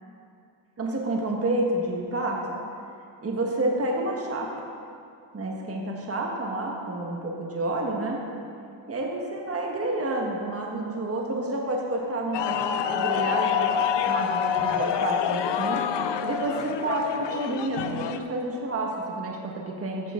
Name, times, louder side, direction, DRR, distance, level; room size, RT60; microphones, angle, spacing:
voice 1, 0.8-2.4 3.2-4.5 5.3-8.2 8.9-20.1, right 2 dB, 30° right, 0 dB, 1.4 m, -29 dB
sound 1, 12.3-18.2, left 8 dB, 60° left, 0.6 m, -27 dB
14.5 x 6.8 x 3.7 m, 2.5 s
cardioid pair, 105°, 48 cm